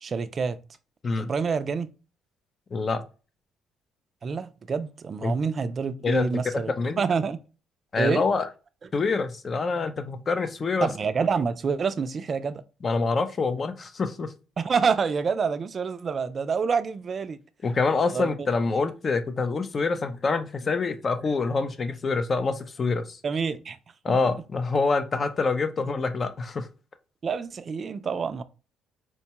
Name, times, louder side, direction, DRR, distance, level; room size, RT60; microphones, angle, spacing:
voice 1, 0.0-0.6 1.2-1.9 4.2-7.4 8.0-8.2 10.8-12.6 14.6-17.4 18.1-18.3 23.2-23.8 24.1-24.2 27.2-28.4, right 5 dB, 35° right, 0.3 m, -27 dB
voice 2, 2.7-3.0 5.2-5.3 6.0-6.4 6.8-7.0 7.9-8.5 8.9-10.9 12.8-14.3 17.6-23.2 24.0-26.7, left 4 dB, 30° left, 0.5 m, -26 dB
4.4 x 2.2 x 2.9 m
cardioid pair, 120°, 0 cm